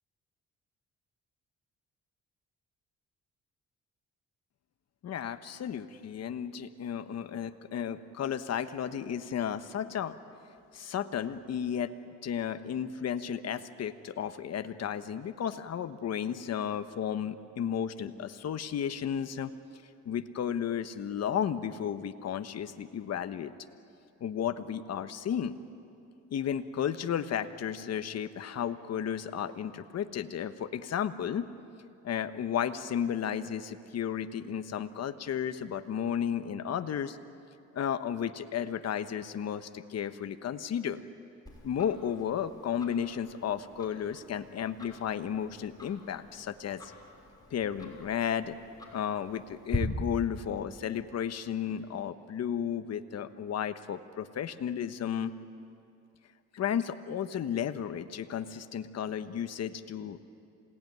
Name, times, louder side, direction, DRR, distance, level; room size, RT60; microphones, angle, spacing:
voice 1, 5.0-10.2 10.7-11.9 12.2-19.5 20.0-23.5 24.2-25.6 26.3-31.5 32.0-37.2 37.7-41.0 41.6-46.9 47.5-48.6 48.9-55.3 56.5-60.2, left 8 dB, 55° left, 10 dB, 1.2 m, -33 dB
Tick-tock, 41.5-49.8, left 2 dB, 15° left, 6.5 m, -45 dB
27.5 x 18.5 x 9.4 m, 2.6 s
cardioid pair, 90°, 30 cm